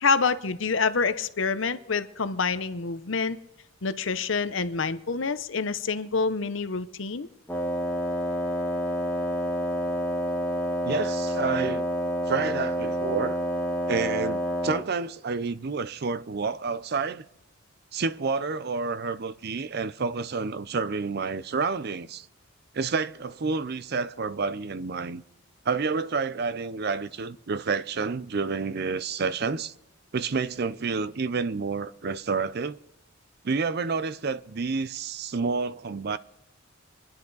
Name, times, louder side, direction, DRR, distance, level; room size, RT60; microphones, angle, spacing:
voice 1, 0.0-3.4 3.8-7.3, left 4 dB, 65° left, 0.8 m, -27 dB
Wind instrument woodwind instrument, 7.5-14.9, equal, 10° left, 1.1 m, -28 dB
voice 2, 10.8-11.9 12.3-13.4 13.9-17.2 17.9-22.3 22.7-25.2 25.7-29.7 30.1-32.8 33.4-36.2, right 4 dB, 50° right, 0.5 m, -29 dB
24.5 x 10.5 x 4.0 m
head